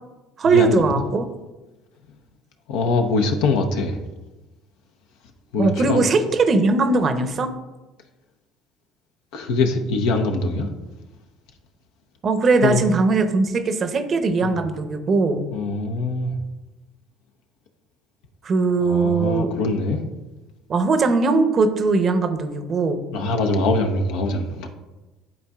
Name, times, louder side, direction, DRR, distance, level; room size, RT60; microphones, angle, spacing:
voice 1, 0.4-1.2 5.6-7.5 12.2-15.5 18.4-19.5 20.7-23.0, right 3 dB, 45° right, 8 dB, 0.7 m, -20 dB
voice 2, 2.7-4.0 5.5-6.1 9.3-10.7 12.6-12.8 14.4-14.5 15.5-16.3 18.8-20.0 23.1-24.7, left 3 dB, 70° left, 4 dB, 0.7 m, -23 dB
11.0 x 4.2 x 2.4 m, 1.1 s
hypercardioid pair, 65°, 0 cm